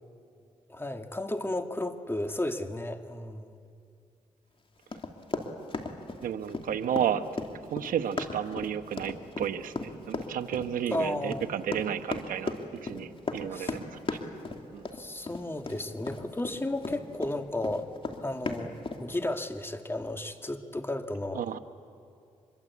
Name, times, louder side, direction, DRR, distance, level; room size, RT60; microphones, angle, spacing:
voice 1, 0.7-3.6 10.9-11.5 13.5-13.8 14.9-17.9 18.2-21.5, left 1 dB, 15° left, 6 dB, 2.0 m, -33 dB
Run, 4.9-17.3 17.6-19.0, left 3 dB, 40° left, 2.8 m, -36 dB
voice 2, 6.2-7.2 7.7-12.5 12.8-14.2 14.7-14.9 21.3-21.6, right 9 dB, 85° right, 8 dB, 1.0 m, -32 dB
25.5 x 23.0 x 8.5 m, 2.4 s
cardioid pair, 60°, 14 cm